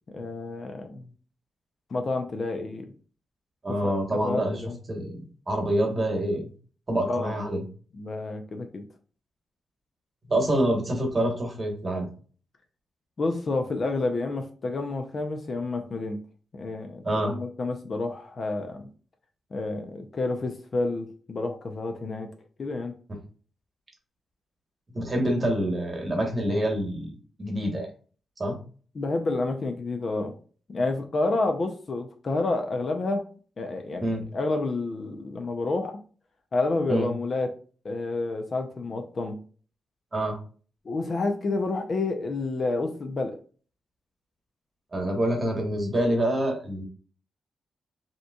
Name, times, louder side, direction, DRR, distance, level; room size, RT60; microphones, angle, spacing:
voice 1, 0.1-1.1 1.9-2.8 3.7-3.9 4.2-4.8 7.1-7.4 7.9-8.8 13.2-16.2 16.5-18.9 19.5-22.3 22.6-22.9 29.0-30.3 30.7-33.2 33.6-36.0 36.5-37.5 37.8-39.4 40.8-43.4, left 3 dB, 35° left, 5 dB, 0.5 m, -29 dB
voice 2, 3.6-4.6 4.9-5.2 5.5-6.5 6.9-7.6 10.3-12.1 17.0-17.3 24.9-27.1 27.4-27.9 28.4-28.6 34.0-34.2 36.9-37.1 40.1-40.4 44.9-46.8, right 1 dB, 25° right, 2 dB, 1.2 m, -26 dB
5.2 x 2.9 x 2.3 m, 0.39 s
wide cardioid pair, 155°, 0 cm